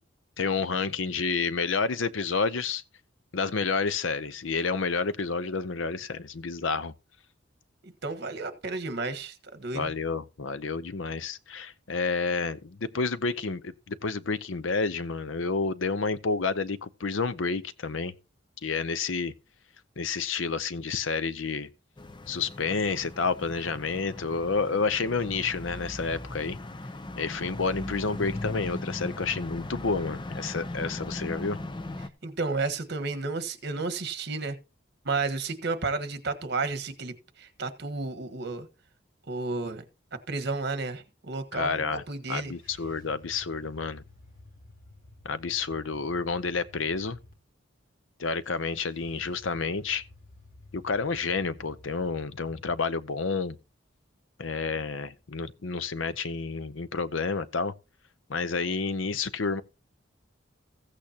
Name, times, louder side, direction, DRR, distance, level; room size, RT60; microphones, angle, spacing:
voice 1, 0.4-2.8 3.3-6.9 9.7-18.1 18.6-19.3 20.0-21.7 22.3-26.6 27.2-31.6 41.5-42.0 42.3-44.0 45.2-47.2 48.2-50.0 50.7-53.6 54.4-57.7 58.3-59.6, left 4 dB, 80° left, 0.7 m, -30 dB
voice 2, 7.8-9.9 32.2-34.6 35.0-38.7 39.3-39.8 40.3-42.5, right 3 dB, 60° right, 1.4 m, -32 dB
sound 1, 22.0-32.1, left 2 dB, 25° left, 0.6 m, -38 dB
sound 2, 42.3-47.3 48.4-52.8, left 2 dB, 45° left, 3.5 m, -53 dB
15.0 x 8.5 x 2.9 m
head